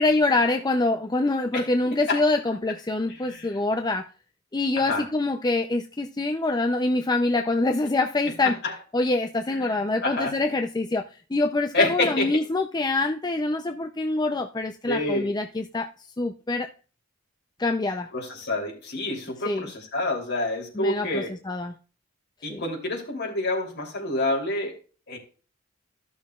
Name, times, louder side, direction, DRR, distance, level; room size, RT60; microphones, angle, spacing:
voice 1, 0.0-4.1 4.5-8.6 8.9-11.0 11.3-15.9 16.2-16.7 17.6-18.1 19.4-19.7 20.8-21.7 22.5-22.6, left 2 dB, 20° left, 0.5 m, -25 dB
voice 2, 1.9-2.2 3.1-3.6 4.8-5.0 8.4-8.7 9.5-10.3 11.7-12.4 14.9-15.3 18.1-21.3 22.4-24.7 25.1-25.2, left 2 dB, 55° left, 3.2 m, -28 dB
15.0 x 6.3 x 2.4 m
head